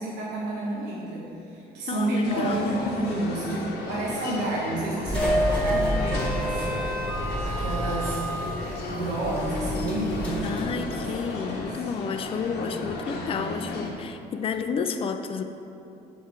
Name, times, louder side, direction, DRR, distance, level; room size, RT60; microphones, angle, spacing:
voice 1, 0.0-6.6 7.1-8.3 8.9-10.6 11.0-11.6 11.9-12.0 13.0-13.7, right 2 dB, 80° right, -6 dB, 1.2 m, -30 dB
voice 2, 1.9-2.8 5.7-6.4 10.4-15.4, left 6 dB, 35° left, 8 dB, 0.4 m, -31 dB
sound 1, 2.2-13.9, left 3 dB, 75° left, 1.0 m, -35 dB
sound 2, 5.0-11.6, equal, 10° left, 1.4 m, -29 dB
6.6 x 4.6 x 4.6 m, 2.8 s
cardioid pair, 110°, 17 cm